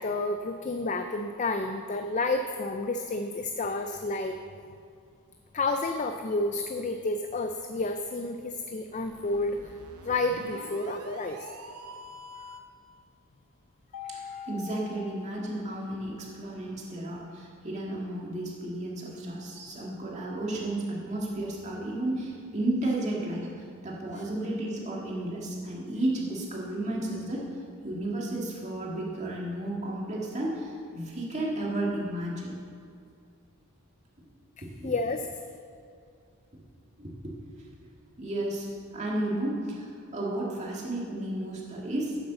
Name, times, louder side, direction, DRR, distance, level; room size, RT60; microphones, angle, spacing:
voice 1, 0.0-4.4 5.5-9.7 10.0-11.5 12.4-12.5 14.0-14.5 34.8-35.3, left 2 dB, 35° left, 6 dB, 0.4 m, -30 dB
sound 1, 8.9-12.8, right 1 dB, 80° right, 0.8 m, -46 dB
Mallet percussion, 13.9-16.2, left 7 dB, 85° left, 0.7 m, -44 dB
voice 2, 14.1-23.5 23.8-27.5 27.8-32.5 34.6-34.9 37.0-37.3 38.2-38.7 38.9-42.2, right 1 dB, 30° right, -3 dB, 2.1 m, -33 dB
9.2 x 8.2 x 6.8 m, 2.4 s
head